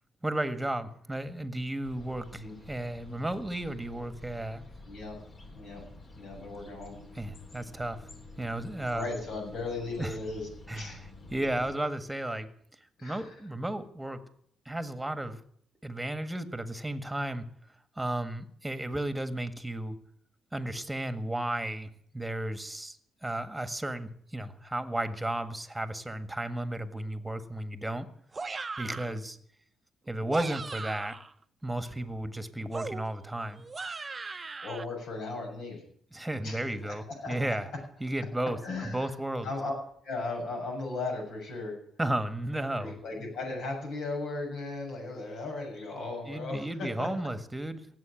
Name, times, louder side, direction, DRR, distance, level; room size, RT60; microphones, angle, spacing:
voice 1, 0.2-4.6 7.1-8.1 8.4-9.1 10.0-10.1 10.7-11.0 11.3-12.5 13.0-14.2 14.6-15.4 15.8-17.5 18.0-20.0 20.5-28.1 28.8-29.4 30.1-31.2 31.6-33.6 36.1-37.7 38.0-39.5 42.0-43.0 46.3-47.9, right 1 dB, 10° right, 10 dB, 1.7 m, -34 dB
sound 1, 1.8-11.8, left 2 dB, 45° left, 4.0 m, -49 dB
voice 2, 4.9-5.2 5.5-5.8 6.2-7.0 8.9-11.0 13.0-13.3 28.9-29.2 34.6-35.8 36.4-37.6 38.6-39.1 39.4-39.7 40.0-41.8 42.6-47.1, left 3 dB, 70° left, 1 dB, 7.2 m, -37 dB
sound 2, 28.3-29.2 30.1-31.3 32.7-34.9, right 4 dB, 30° right, 0.7 m, -38 dB
17.0 x 8.0 x 9.1 m, 0.62 s
cardioid pair, 90°, 0 cm